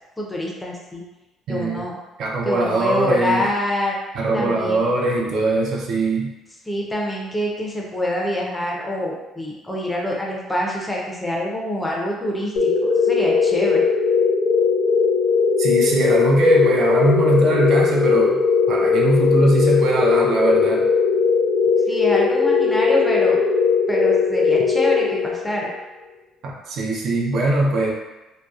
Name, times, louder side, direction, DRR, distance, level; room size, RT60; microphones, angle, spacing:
voice 1, 0.2-1.0 1.5-2.0 2.5-4.0 4.3-4.9 6.7-13.9 21.9-23.4 23.9-25.7, left 1 dB, 10° left, -2 dB, 0.5 m, -25 dB
voice 2, 1.5-1.9 2.2-3.5 4.1-6.3 15.6-18.4 18.7-20.9 26.4-27.9, right 2 dB, 60° right, -2 dB, 0.5 m, -21 dB
sound 1, 12.6-25.7, left 5 dB, 75° left, 0.6 m, -19 dB
2.7 x 2.0 x 2.3 m, 1.1 s
cardioid pair, 120°, 0 cm